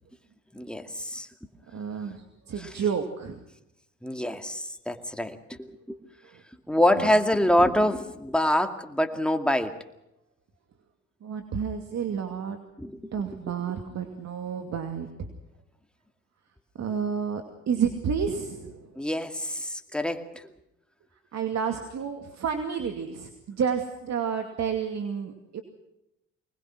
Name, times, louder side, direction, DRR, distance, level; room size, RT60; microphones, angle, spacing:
voice 1, 0.6-1.3 4.0-6.0 6.7-9.7 12.8-13.1 19.0-20.3, left 1 dB, 5° left, 6 dB, 2.2 m, -25 dB
voice 2, 1.7-3.4 6.2-6.4 6.9-7.1 11.2-12.6 13.1-15.3 16.8-18.9 21.3-25.6, right 7 dB, 60° right, 6 dB, 2.5 m, -30 dB
24.5 x 20.0 x 6.2 m, 0.87 s
cardioid pair, 90°, 30 cm